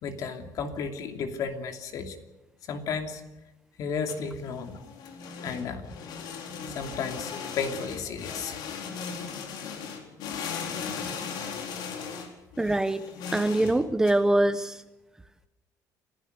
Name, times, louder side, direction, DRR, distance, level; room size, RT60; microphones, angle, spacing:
voice 1, 0.0-2.2 2.7-3.2 3.8-5.0 5.4-5.9 6.7-8.6, left 5 dB, 55° left, 5 dB, 2.8 m, -33 dB
sound 1, 3.9-14.1, left 6 dB, 80° left, 4.2 m, -37 dB
voice 2, 12.6-13.1 13.3-14.8, right 1 dB, 10° right, 12 dB, 0.7 m, -24 dB
28.0 x 16.0 x 6.7 m, 1.0 s
cardioid pair, 165°, 7 cm